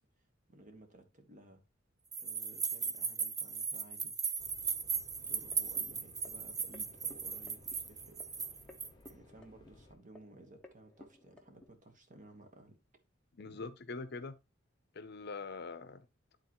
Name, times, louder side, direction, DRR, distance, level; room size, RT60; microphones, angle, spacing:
voice 1, 0.5-1.6 2.2-4.2 5.3-8.2 8.5-8.6 9.0-12.8 13.5-13.6, right 1 dB, 40° right, 1.4 m, -57 dB
sound 1, 2.1-9.1, right 6 dB, 20° right, 0.5 m, -37 dB
sound 2, 4.4-10.0, left 2 dB, 20° left, 1.3 m, -60 dB
sound 3, 5.2-11.7, left 2 dB, 5° left, 0.9 m, -60 dB
voice 2, 13.3-14.4 14.9-16.1, left 4 dB, 55° left, 0.7 m, -43 dB
11.0 x 3.9 x 3.0 m
head